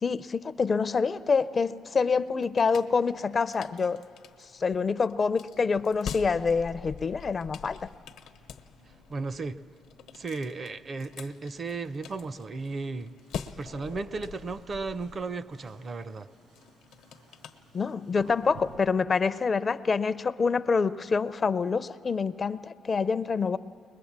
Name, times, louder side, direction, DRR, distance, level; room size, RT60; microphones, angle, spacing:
voice 1, 0.0-4.0 4.6-7.9 17.7-23.6, left 5 dB, 40° left, 0.4 m, -26 dB
sound 1, 2.0-18.2, left 8 dB, 85° left, 0.9 m, -45 dB
sound 2, 6.1-18.8, right 1 dB, 85° right, 6.6 m, -56 dB
voice 2, 9.1-9.6 10.1-13.1 13.6-16.3, right 3 dB, 45° right, 0.5 m, -35 dB
22.0 x 21.0 x 7.3 m
cardioid pair, 90°, 0 cm